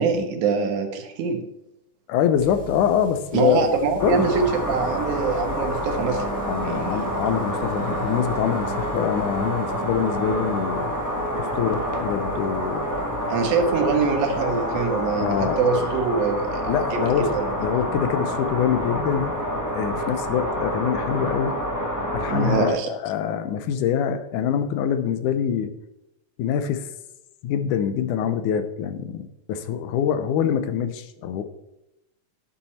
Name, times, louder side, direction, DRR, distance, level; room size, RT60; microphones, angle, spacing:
voice 1, 0.0-1.4 3.3-6.2 6.6-7.1 13.3-17.6 22.3-22.9, right 5 dB, 75° right, 5 dB, 2.6 m, -24 dB
voice 2, 2.1-3.7 4.0-4.3 6.5-10.9 11.4-12.9 15.2-15.6 16.2-16.3 16.7-17.3 17.6-19.4 19.7-21.5 22.1-25.7 26.4-26.9 27.4-31.4, left 8 dB, 90° left, 9 dB, 2.3 m, -24 dB
sound 1, 2.3-19.1 19.4-19.5 19.7-19.8 20.0-20.1 20.3-20.4 21.1-21.2, right 1 dB, 5° right, 1.2 m, -44 dB
sound 2, 4.0-22.7, equal, 15° left, 0.6 m, -28 dB
Wind instrument woodwind instrument, 5.9-10.8, right 4 dB, 70° left, 3.0 m, -38 dB
10.5 x 7.3 x 4.3 m, 0.88 s
omnidirectional pair, 3.5 m